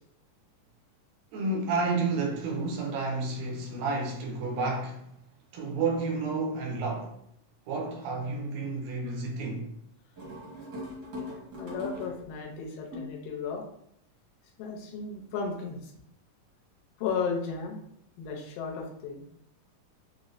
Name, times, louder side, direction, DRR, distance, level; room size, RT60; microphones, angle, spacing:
voice 1, 1.3-5.1 5.5-7.1 7.7-9.7, right 3 dB, 90° right, 2.4 m, -30 dB
sound 1, 10.2-12.4 12.9-13.3, left 1 dB, 70° right, 0.9 m, -40 dB
voice 2, 11.6-13.6 14.6-15.9 17.0-17.8 18.2-19.2, left 5 dB, 85° left, 2.3 m, -34 dB
6.1 x 2.1 x 2.5 m
omnidirectional pair, 3.9 m